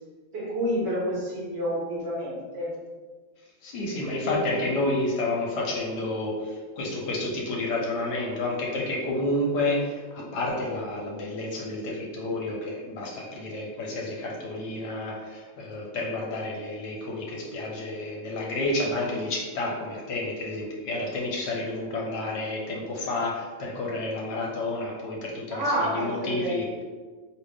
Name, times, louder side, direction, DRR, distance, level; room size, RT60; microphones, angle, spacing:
voice 1, 0.3-2.7 4.1-4.7 25.5-26.6, equal, 70° right, -6 dB, 1.9 m, -29 dB
voice 2, 3.6-26.8, left 2 dB, 70° left, -2 dB, 1.3 m, -30 dB
5.2 x 2.5 x 3.4 m, 1.4 s
omnidirectional pair, 2.0 m